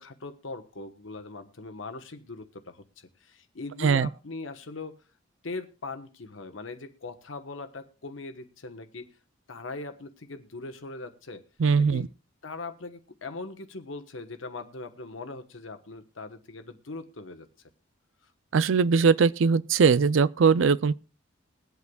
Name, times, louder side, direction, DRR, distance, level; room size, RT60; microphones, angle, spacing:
voice 1, 0.0-5.0 5.4-9.1 9.5-11.4 11.8-12.0 12.4-17.5 18.2-18.3, left 3 dB, 85° left, 1.2 m, -40 dB
voice 2, 11.6-12.1 18.5-20.9, right 5 dB, 80° right, 0.4 m, -21 dB
22.0 x 8.1 x 2.3 m
head